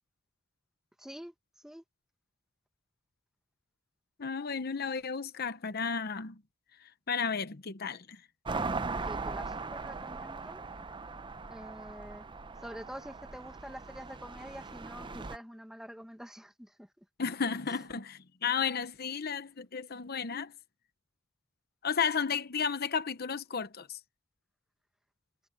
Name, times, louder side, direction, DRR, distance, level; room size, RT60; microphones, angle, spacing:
voice 1, 1.0-1.3 1.6-1.8 9.0-10.6 11.5-12.3 12.6-17.0 17.7-17.8, equal, 5° right, 1.5 m, -47 dB
voice 2, 4.2-6.4 6.8-8.2 17.2-20.5 21.8-24.0, left 6 dB, 55° left, 0.9 m, -33 dB
sound 1, 8.4-15.4, right 3 dB, 25° right, 0.6 m, -39 dB
head